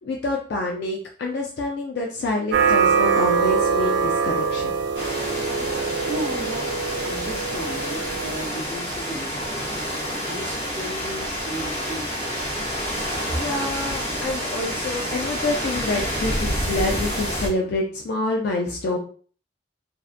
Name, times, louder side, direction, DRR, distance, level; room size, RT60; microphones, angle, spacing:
voice 1, 0.0-4.7 13.3-19.0, left 2 dB, 60° left, 0 dB, 0.3 m, -27 dB
sound 1, 2.5-8.5, right 6 dB, 80° right, 0.4 m, -23 dB
sound 2, 4.9-17.5, equal, 10° left, 0.9 m, -28 dB
voice 2, 6.0-6.7 7.0-9.7 10.2-12.5, right 1 dB, 45° right, -2 dB, 0.8 m, -35 dB
2.6 x 2.1 x 2.4 m, 0.43 s
head